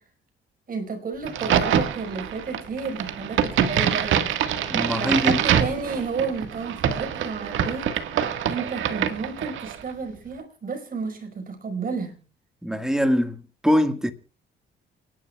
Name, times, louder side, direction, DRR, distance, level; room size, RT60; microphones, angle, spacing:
voice 1, 0.7-4.3 5.0-7.9 8.5-12.2, right 4 dB, 45° right, 5.0 m, -31 dB
Crack, 1.2-9.8, right 9 dB, 80° right, 1.7 m, -25 dB
voice 2, 4.7-5.4 12.6-14.1, equal, 5° right, 1.7 m, -23 dB
29.0 x 11.0 x 2.3 m
cardioid pair, 90°, 20 cm